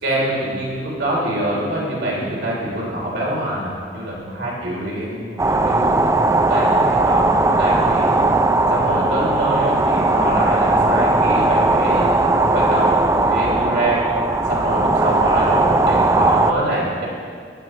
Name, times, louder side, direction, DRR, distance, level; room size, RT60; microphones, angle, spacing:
voice 1, 0.0-8.2 8.7-14.0 14.4-17.1, right 1 dB, 70° right, -5 dB, 3.1 m, -24 dB
sound 1, 5.4-16.5, right 2 dB, 15° right, 0.4 m, -18 dB
15.5 x 10.5 x 3.2 m, 2.2 s
head